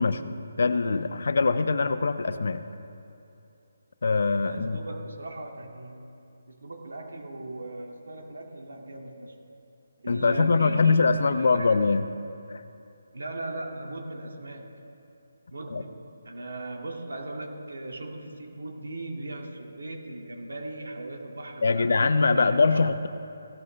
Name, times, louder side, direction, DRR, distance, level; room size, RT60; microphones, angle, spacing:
voice 1, 0.0-2.6 4.0-4.8 10.1-12.1 12.5-12.6 15.7-15.8 21.6-23.1, left 4 dB, 60° left, 11 dB, 0.7 m, -23 dB
voice 2, 4.4-6.2 6.5-9.4 10.0-11.8 13.1-14.8 15.5-22.0 22.3-22.8, right 2 dB, 90° right, 1 dB, 2.3 m, -38 dB
17.0 x 13.0 x 3.4 m, 2.8 s
hypercardioid pair, 170°, 0 cm